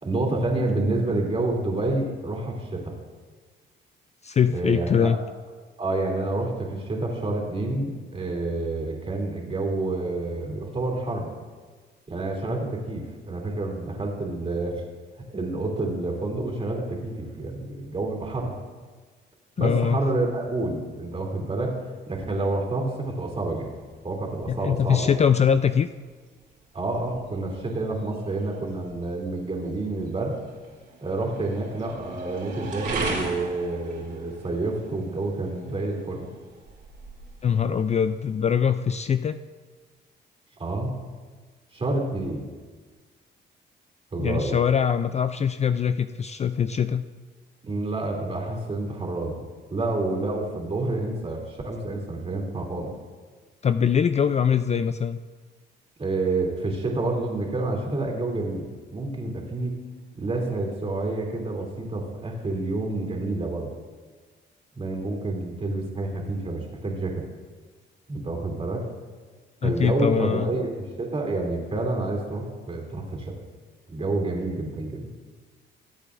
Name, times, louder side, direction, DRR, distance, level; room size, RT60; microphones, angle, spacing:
voice 1, 0.0-3.0 4.5-5.1 5.8-11.3 12.1-14.8 15.3-18.6 19.6-21.8 22.1-23.7 24.0-25.1 26.7-30.4 31.0-36.3 40.6-40.9 41.7-42.4 44.1-44.6 47.6-49.4 49.7-52.9 56.0-59.8 60.1-63.7 64.7-67.3 68.1-68.8 69.6-73.3 73.9-75.1, right 2 dB, 30° right, 0 dB, 2.9 m, -28 dB
voice 2, 4.2-5.2 19.6-20.0 24.5-25.9 37.4-39.4 44.2-47.1 53.6-55.2 69.6-70.5, left 7 dB, 35° left, 10 dB, 0.4 m, -22 dB
sound 1, 23.0-38.5, right 3 dB, 60° right, 2.8 m, -39 dB
20.5 x 8.2 x 2.5 m, 1.4 s
cardioid pair, 90°, 20 cm